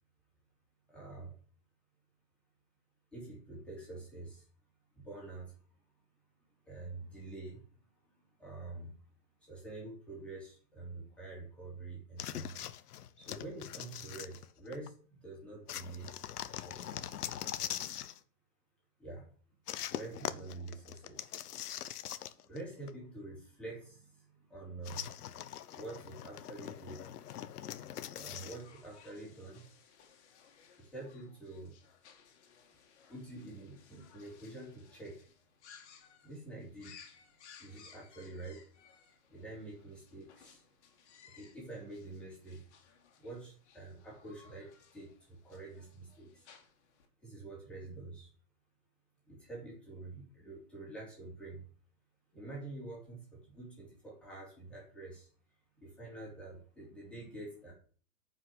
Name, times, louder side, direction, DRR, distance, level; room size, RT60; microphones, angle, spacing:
voice 1, 0.9-1.3 3.1-4.4 4.9-5.6 6.6-7.6 8.2-8.9 9.4-12.5 13.2-16.1 16.5-17.2 19.0-19.3 19.9-21.3 22.5-25.1 25.7-27.0 28.2-29.6 30.8-31.7 33.1-35.3 36.2-36.9 37.6-38.6 39.3-40.6 41.2-42.6 43.2-46.5 47.2-48.3 49.3-51.6 52.3-55.3 55.8-57.7, right 2 dB, ahead, -4 dB, 3.4 m, -47 dB
sound 1, 12.2-14.9 15.7-18.2 19.7-22.6 22.9-23.0 24.8-28.6, left 11 dB, 70° left, 1.0 m, -42 dB
sound 2, 28.2-47.1, left 7 dB, 45° left, 2.4 m, -61 dB
9.6 x 5.8 x 7.9 m, 0.43 s
hypercardioid pair, 175°, 47 cm